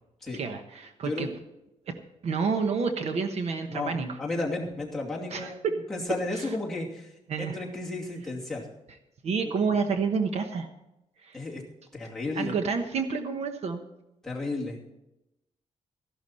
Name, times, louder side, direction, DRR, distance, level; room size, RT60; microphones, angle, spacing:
voice 1, 0.3-1.3 2.2-4.2 5.3-5.7 7.3-7.6 9.2-10.7 11.2-11.4 12.3-13.8, right 5 dB, 60° right, 6 dB, 1.1 m, -29 dB
voice 2, 3.7-7.1 7.4-8.7 9.4-9.5 11.3-11.6 11.9-12.6 14.2-14.8, left 2 dB, 5° left, -5 dB, 2.5 m, -33 dB
14.0 x 11.5 x 4.3 m, 0.91 s
wide cardioid pair, 175°, 12 cm